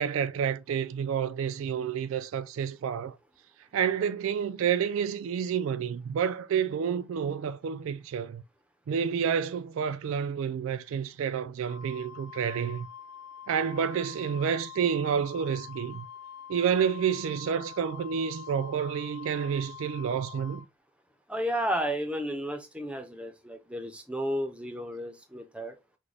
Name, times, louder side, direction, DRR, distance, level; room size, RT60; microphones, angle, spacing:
voice 1, 0.0-3.2 3.7-8.4 8.9-12.9 13.5-16.1 16.5-20.6, right 7 dB, 65° right, 0.3 m, -29 dB
Wind instrument woodwind instrument, 11.7-20.6, left 8 dB, 70° left, 0.5 m, -46 dB
voice 2, 21.3-25.7, equal, 5° right, 0.5 m, -32 dB
6.1 x 2.2 x 3.2 m
head